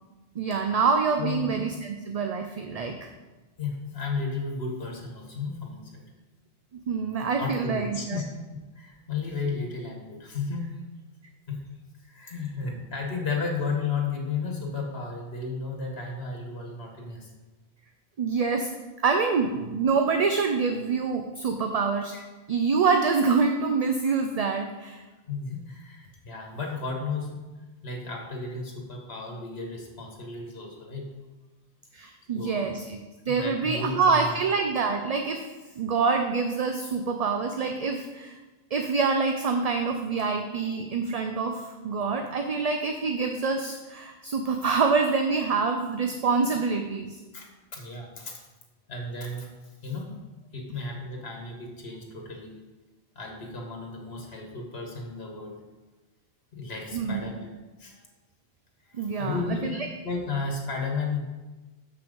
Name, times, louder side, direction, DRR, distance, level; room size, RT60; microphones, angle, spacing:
voice 1, 0.4-3.1 6.9-8.2 18.2-18.7 19.0-22.1 22.5-25.0 31.9-33.0 33.3-35.5 35.8-38.3 38.7-47.2 56.9-57.2 59.0-59.9, right 4 dB, 45° right, 5 dB, 0.5 m, -26 dB
voice 2, 1.2-1.5 3.6-6.0 7.4-8.3 8.8-10.8 11.5-11.6 12.0-17.3 22.1-22.2 25.3-27.5 27.8-31.1 32.3-32.7 33.3-34.4 47.3-47.5 47.7-48.4 48.9-49.5 49.8-50.2 50.5-52.6 53.2-55.6 56.5-57.5 57.8-58.0 58.9-59.8 60.0-61.2, left 4 dB, 75° left, 1 dB, 1.7 m, -33 dB
7.0 x 5.9 x 5.3 m, 1.2 s
omnidirectional pair, 1.0 m